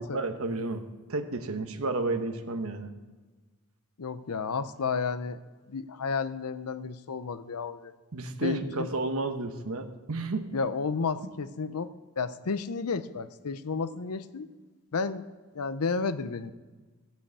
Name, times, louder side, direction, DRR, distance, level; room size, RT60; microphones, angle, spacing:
voice 1, 0.0-2.9 8.1-10.5, right 2 dB, 70° right, 8 dB, 1.1 m, -32 dB
voice 2, 4.0-5.4 5.7-7.9 8.4-8.9 10.5-11.9 12.2-14.5 14.9-15.3 15.5-16.5, left 5 dB, 85° left, 13 dB, 0.6 m, -32 dB
15.0 x 5.7 x 8.3 m, 1.3 s
head